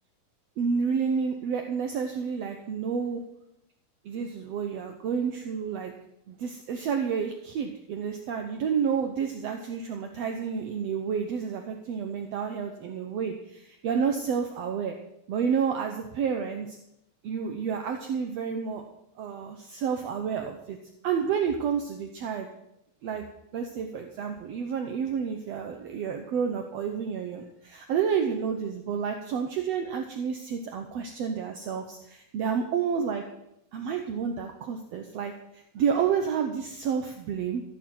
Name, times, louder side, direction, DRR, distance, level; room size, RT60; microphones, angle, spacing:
voice 1, 0.6-3.2 4.0-5.9 6.3-14.9 15.3-16.8 17.2-18.8 19.2-20.8 21.0-22.5 23.0-23.2 23.5-33.2 33.7-37.6, right 6 dB, 75° right, 4 dB, 1.5 m, -30 dB
15.0 x 6.7 x 7.7 m, 0.82 s
omnidirectional pair, 4.1 m